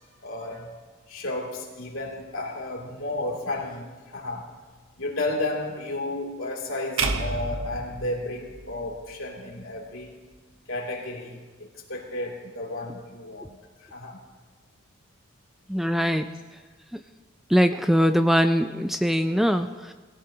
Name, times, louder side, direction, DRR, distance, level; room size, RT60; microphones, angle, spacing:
voice 1, 0.2-0.7 1.1-4.5 5.0-10.1 10.7-14.2, left 2 dB, 75° left, -2 dB, 2.8 m, -33 dB
sound 1, 7.0-9.2, right 3 dB, 75° right, 1.1 m, -30 dB
voice 2, 15.7-16.2 17.5-19.9, equal, ahead, 8 dB, 0.3 m, -22 dB
21.0 x 15.0 x 2.8 m, 1.3 s
head